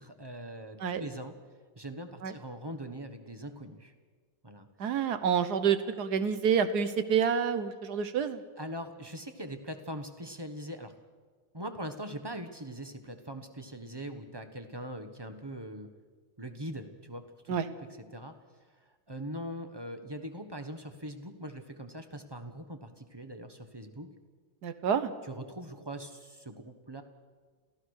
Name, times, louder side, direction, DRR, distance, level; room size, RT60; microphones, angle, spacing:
voice 1, 0.0-1.3 1.8-3.9 4.4-4.7 8.6-10.9 11.5-15.9 16.4-17.6 18.1-18.3 18.8-24.1 25.2-27.0, right 1 dB, 15° right, 7 dB, 0.9 m, -41 dB
voice 2, 4.8-8.4 17.5-17.7 24.6-25.1, right 7 dB, 55° right, 11 dB, 1.5 m, -28 dB
27.5 x 15.0 x 6.5 m, 1.5 s
omnidirectional pair, 2.2 m